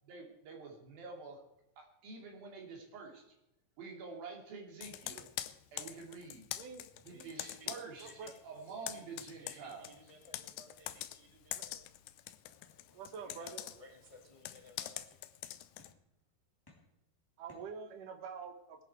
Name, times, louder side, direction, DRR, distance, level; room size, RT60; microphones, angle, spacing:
voice 1, 0.1-1.4 1.8-3.4 3.8-5.3 5.7-6.5 7.0-9.9 10.8-11.8, right 4 dB, 90° right, 1 dB, 4.5 m, -48 dB
Computer keyboard, 4.8-8.4 8.7-15.9, left 14 dB, 85° left, 2.4 m, -44 dB
voice 2, 7.3-7.8 8.0-8.4 9.4-10.8 13.2-15.2, equal, 50° left, 2 dB, 0.3 m, -57 dB
voice 3, 8.0-8.3 11.6-11.7 12.9-13.6 17.4-18.8, right 6 dB, 65° right, 6 dB, 3.0 m, -46 dB
sound 1, 12.4-13.8 14.1-14.8 15.8-16.3 16.7-18.3, left 2 dB, 5° left, 2.7 m, -67 dB
18.5 x 11.5 x 4.7 m, 0.88 s
omnidirectional pair, 4.1 m